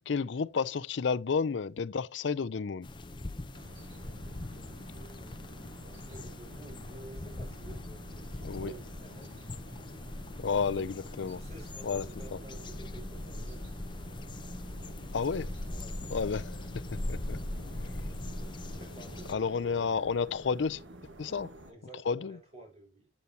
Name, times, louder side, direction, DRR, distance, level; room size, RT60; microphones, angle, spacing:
voice 1, 0.1-2.9 8.4-8.7 10.4-11.4 11.8-12.1 12.3-12.4 15.1-15.5 16.1-17.4 17.7-18.1 19.3-20.8 21.2-21.5 22.1-22.4, left 5 dB, 75° left, 0.5 m, -31 dB
sound 1, 2.8-19.3, left 1 dB, 25° left, 0.7 m, -41 dB
sound 2, 3.5-21.7, right 1 dB, 90° right, 1.3 m, -51 dB
voice 2, 4.0-9.6 10.3-10.4 11.3-13.8 15.7-16.2 18.3-20.0 21.7-23.1, right 2 dB, 35° right, 4.7 m, -52 dB
9.5 x 8.7 x 2.7 m
head